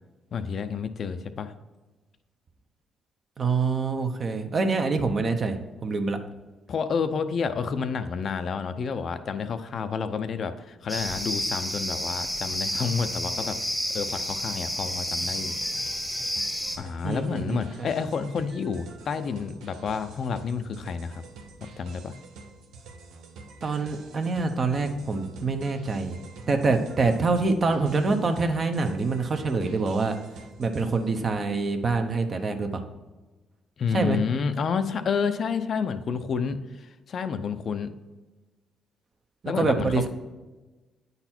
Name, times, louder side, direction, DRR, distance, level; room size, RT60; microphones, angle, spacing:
voice 1, 0.3-1.5 6.7-13.6 13.9-15.5 16.8-21.2 21.8-22.2 33.8-37.9 39.5-40.1, left 6 dB, 55° left, 10 dB, 0.5 m, -29 dB
voice 2, 3.4-6.2 17.0-17.9 23.6-30.2 30.6-32.8 33.9-34.2 39.4-40.1, right 3 dB, 40° right, 6 dB, 0.8 m, -26 dB
sound 1, 10.9-16.8, equal, ahead, 1.0 m, -30 dB
sound 2, 14.9-31.2, right 3 dB, 85° right, 0.8 m, -47 dB
8.9 x 4.1 x 4.4 m, 1.2 s
cardioid pair, 90°, 0 cm